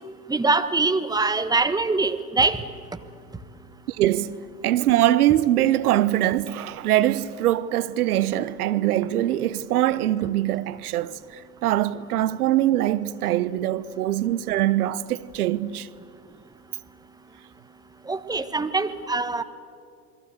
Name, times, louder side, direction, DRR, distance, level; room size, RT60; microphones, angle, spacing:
voice 1, 0.3-2.6 18.1-19.4, right 3 dB, 10° right, 1.3 m, -23 dB
voice 2, 3.9-4.4 4.6-15.9, right 13 dB, 70° right, 1.0 m, -23 dB
28.5 x 21.5 x 7.9 m
hypercardioid pair, 95°, 46 cm